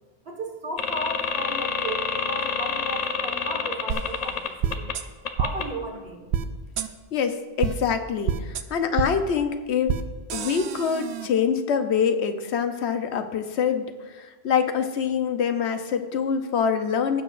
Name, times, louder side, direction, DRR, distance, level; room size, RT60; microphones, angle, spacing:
voice 1, 0.2-4.4 4.6-4.9 5.4-6.3, right 1 dB, 65° right, 0 dB, 1.6 m, -34 dB
sound 1, 0.8-4.9 5.3-5.6, left 5 dB, 45° left, 0.6 m, -28 dB
sound 2, 3.9-4.0 4.6-5.0 5.4-5.5 6.3-6.4 6.8-6.9 7.6-7.7 8.3-8.6 9.0-9.1 9.9-10.0 10.3-11.3, right 8 dB, 85° right, 0.9 m, -27 dB
voice 2, 7.1-9.9 10.3-13.9 14.1-17.2, left 7 dB, 85° left, 8 dB, 1.0 m, -25 dB
16.5 x 7.0 x 2.5 m, 1.3 s
omnidirectional pair, 1.1 m